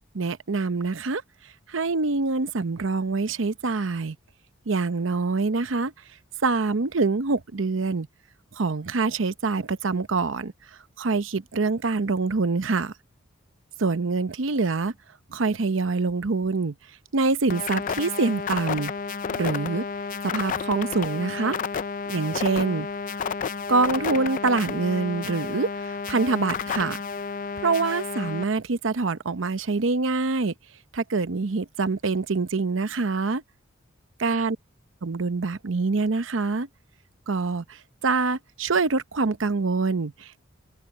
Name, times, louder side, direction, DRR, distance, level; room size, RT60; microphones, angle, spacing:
voice 1, 0.1-1.2 1.7-4.2 4.7-5.9 6.4-8.1 8.5-10.5 11.0-12.9 13.8-14.9 15.3-16.7 17.1-18.9 19.4-19.8 20.2-21.6 22.1-22.9 23.7-27.0 27.6-30.5 30.9-33.4 34.2-34.6 35.0-36.7 37.3-40.4, right 3 dB, 75° right, 0.8 m, -25 dB
sound 1, 17.5-28.4, left 6 dB, 40° left, 0.4 m, -31 dB
head